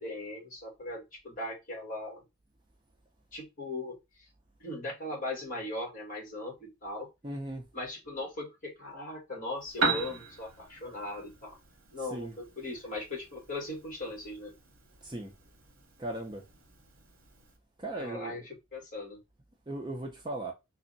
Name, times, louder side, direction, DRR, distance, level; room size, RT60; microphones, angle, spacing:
voice 1, 0.0-2.2 3.3-4.2 4.6-7.1 7.7-11.6 11.9-14.6 17.9-19.2, left 2 dB, 40° left, 1.4 m, -39 dB
voice 2, 7.2-7.6 12.1-12.3 15.0-15.3 16.0-16.4 17.8-18.4 19.7-20.5, right 1 dB, 20° right, 0.5 m, -37 dB
Piano, 9.6-17.6, right 3 dB, 75° right, 0.8 m, -39 dB
3.4 x 2.1 x 3.9 m
head